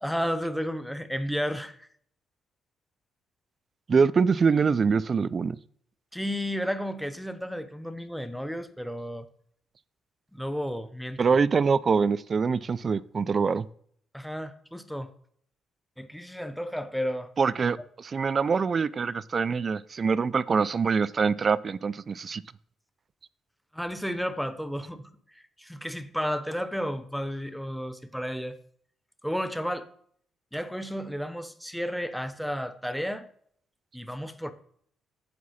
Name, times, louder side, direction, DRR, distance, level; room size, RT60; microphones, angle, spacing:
voice 1, 0.0-1.9 6.1-9.3 10.3-11.4 14.1-15.1 16.0-17.3 23.7-25.1 25.6-28.6 29.2-29.9 30.5-33.2 33.9-34.5, equal, ahead, 0.9 m, -32 dB
voice 2, 3.9-5.6 11.2-13.6 17.4-22.4, right 5 dB, 40° right, 0.4 m, -24 dB
9.5 x 7.1 x 4.3 m
cardioid pair, 90°, 0 cm